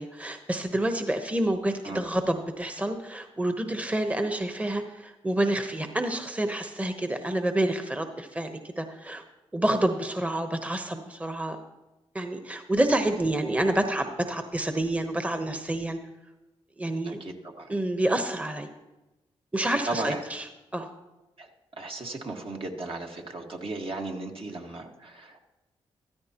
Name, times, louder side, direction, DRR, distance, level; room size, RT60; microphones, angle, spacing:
voice 1, 0.0-9.2 9.5-11.6 12.1-16.0 16.8-17.2 17.7-18.7 19.5-20.9, right 1 dB, 10° right, 7 dB, 1.0 m, -28 dB
voice 2, 17.0-17.7 19.9-20.2 21.4-21.5 21.8-25.4, right 2 dB, 55° right, 1 dB, 1.7 m, -35 dB
14.0 x 13.0 x 2.9 m, 1.0 s
supercardioid pair, 50°, 11 cm